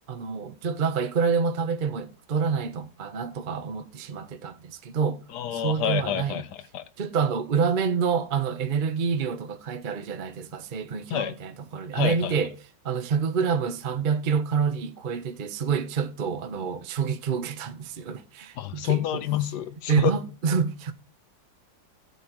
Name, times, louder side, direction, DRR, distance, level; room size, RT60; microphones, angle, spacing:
voice 1, 0.1-5.2 5.5-6.4 7.0-12.5 12.8-19.2 19.9-20.9, right 6 dB, 55° right, 0.5 m, -27 dB
voice 2, 5.3-6.8 11.1-11.3 11.9-12.4 18.6-20.1, left 10 dB, 65° left, 1.3 m, -28 dB
15.5 x 8.3 x 2.9 m
omnidirectional pair, 2.1 m